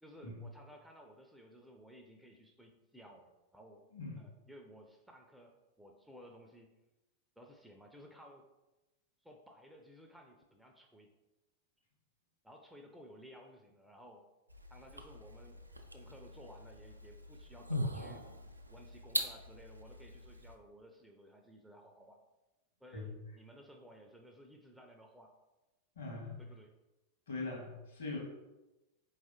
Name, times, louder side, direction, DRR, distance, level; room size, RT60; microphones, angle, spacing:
voice 1, 0.0-3.8 4.2-6.7 7.4-8.5 9.2-11.1 12.4-14.2 14.7-15.7 15.9-18.3 18.7-22.2 22.8-25.3 26.4-26.7, equal, ahead, 2 dB, 0.5 m, -56 dB
sound 1, 14.5-20.6, equal, 85° right, 0.4 m, -42 dB
voice 2, 25.9-26.4 27.3-28.2, left 3 dB, 65° left, -1 dB, 1.5 m, -41 dB
4.5 x 3.2 x 2.9 m, 1.0 s
figure-of-eight pair, 90°, 0 cm